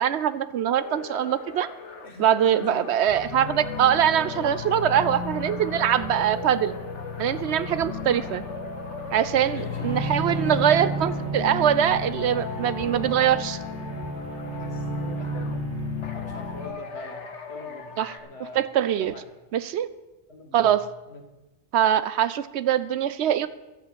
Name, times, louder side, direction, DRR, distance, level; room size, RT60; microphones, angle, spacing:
voice 1, 0.0-1.7 2.2-6.8 7.2-8.4 9.1-13.6 18.0-18.1 18.4-19.1 19.5-19.9 20.5-20.9 21.7-23.5, right 10 dB, 75° right, 14 dB, 0.9 m, -23 dB
sound 1, 0.7-11.3 11.6-15.6 16.0-18.2, left 4 dB, 80° left, 1.6 m, -40 dB
voice 2, 2.0-3.1 9.5-9.8 10.4-10.8 14.5-18.6 18.9-19.2 20.3-20.7 21.1-21.2, left 1 dB, 65° left, 3 dB, 2.2 m, -43 dB
sound 2, 3.0-16.7, left 5 dB, 50° left, 3.5 m, -35 dB
Bowed string instrument, 9.7-16.4, right 4 dB, 25° right, 5.3 m, -33 dB
11.5 x 8.1 x 8.1 m, 1.0 s
omnidirectional pair, 1.2 m